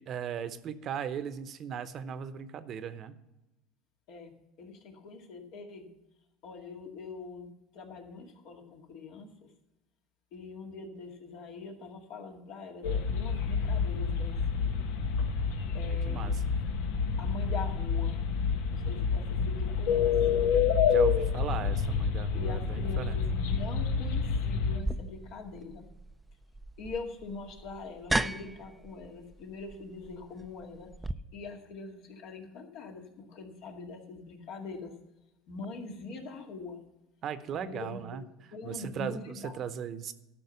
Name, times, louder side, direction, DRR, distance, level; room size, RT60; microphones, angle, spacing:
voice 1, 0.0-3.1 15.9-16.4 20.9-23.2 37.2-38.2 38.6-40.1, right 8 dB, 45° right, 12 dB, 0.8 m, -38 dB
voice 2, 4.1-5.9 6.4-9.3 10.3-14.4 15.7-16.4 17.2-18.2 18.7-20.1 22.3-25.9 26.8-30.9 31.3-34.9 35.5-36.8 37.5-38.2 38.5-39.5, left 4 dB, 65° left, 2 dB, 2.1 m, -43 dB
sound 1, 12.8-24.8, left 6 dB, 85° left, 1.2 m, -28 dB
sound 2, 24.8-31.1, right 2 dB, 10° right, 0.5 m, -36 dB
12.5 x 5.8 x 6.9 m, 0.98 s
supercardioid pair, 105°, 0 cm